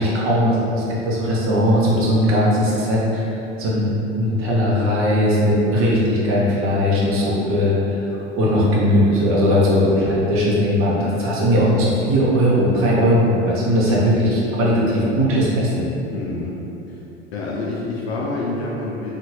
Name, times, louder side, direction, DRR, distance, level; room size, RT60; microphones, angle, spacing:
voice 1, 0.0-3.3 3.6-3.9 4.1-8.0 8.4-15.9, equal, 40° right, -6 dB, 0.8 m, -18 dB
voice 2, 16.1-16.5 16.9-17.0 17.3-19.1, left 2 dB, 65° left, -5 dB, 0.5 m, -27 dB
2.7 x 2.4 x 3.0 m, 2.9 s
figure-of-eight pair, 70°, 33 cm